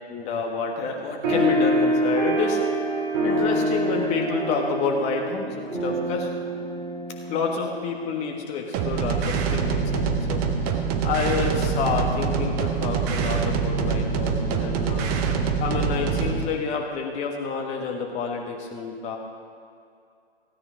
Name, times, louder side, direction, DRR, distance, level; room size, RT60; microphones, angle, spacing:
voice 1, 0.1-2.6 3.2-6.3 7.3-10.4 10.7-15.1 15.6-19.2, left 5 dB, 20° left, 1 dB, 1.5 m, -28 dB
sound 1, 1.2-8.1, right 1 dB, 45° right, 3.4 m, -26 dB
sound 2, 8.7-16.4, right 5 dB, 15° right, 0.6 m, -25 dB
16.0 x 9.4 x 5.1 m, 2.4 s
figure-of-eight pair, 125°, 32 cm